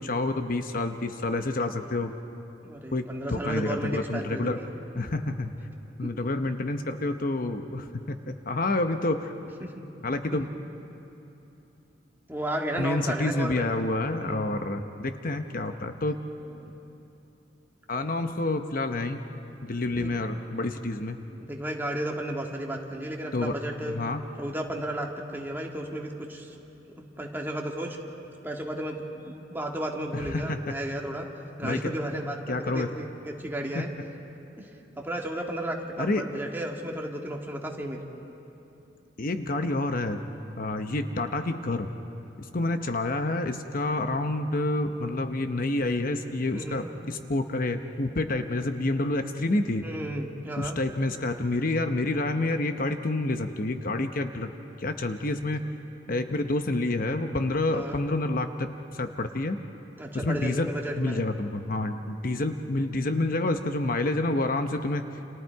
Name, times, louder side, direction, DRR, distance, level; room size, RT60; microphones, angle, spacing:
voice 1, 0.0-2.1 2.9-4.6 4.9-5.5 6.0-8.2 8.5-9.3 10.0-10.5 12.8-16.2 17.9-19.3 19.6-21.2 23.3-23.6 23.9-24.2 30.1-30.8 31.6-31.9 32.5-32.9 33.7-33.9 36.0-36.3 39.2-40.2 40.6-41.9 42.5-49.8 50.6-54.5 54.8-55.6 56.1-59.6 60.1-60.7 61.0-65.1, left 2 dB, 50° left, 7 dB, 0.9 m, -28 dB
voice 2, 2.6-4.7 6.0-6.1 9.6-9.8 10.3-10.4 12.3-13.7 14.2-14.6 16.5-16.8 19.9-20.1 21.4-24.0 24.4-26.5 27.0-28.0 28.4-31.3 31.6-33.9 34.6-34.7 35.0-38.2 46.5-46.9 49.8-50.8 57.7-58.0 60.0-61.3, right 1 dB, 10° right, 0 dB, 2.0 m, -33 dB
29.5 x 28.0 x 4.7 m, 3.0 s
head